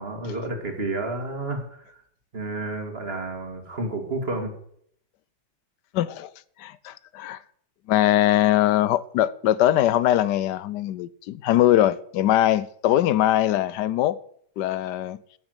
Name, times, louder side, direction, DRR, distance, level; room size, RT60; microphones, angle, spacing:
voice 1, 0.0-2.0 2.3-4.5, right 2 dB, 35° right, 2.7 m, -30 dB
voice 2, 5.9-6.3 6.6-7.4 7.9-14.2 14.6-15.2, left 13 dB, 75° left, 1.2 m, -21 dB
14.5 x 7.1 x 8.0 m
omnidirectional pair, 1.9 m